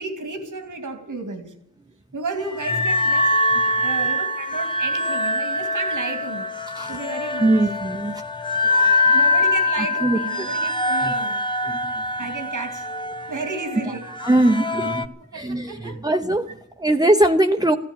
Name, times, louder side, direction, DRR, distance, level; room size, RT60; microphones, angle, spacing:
voice 1, 0.0-1.5 2.1-3.3 3.8-6.5 6.9-7.7 9.1-11.5 12.2-12.9 13.3-14.1 14.4-14.9 15.3-16.6 16.9-17.0, right 3 dB, 85° right, 2.5 m, -33 dB
sound 1, 2.4-15.0, left 2 dB, 15° left, 1.1 m, -23 dB
voice 2, 7.4-8.2 8.8-8.9 10.0-10.7 11.0-11.1 11.7-12.0 13.9-15.0 15.3-17.8, right 1 dB, 15° right, 0.8 m, -21 dB
15.0 x 10.5 x 8.9 m
wide cardioid pair, 85°, 30 cm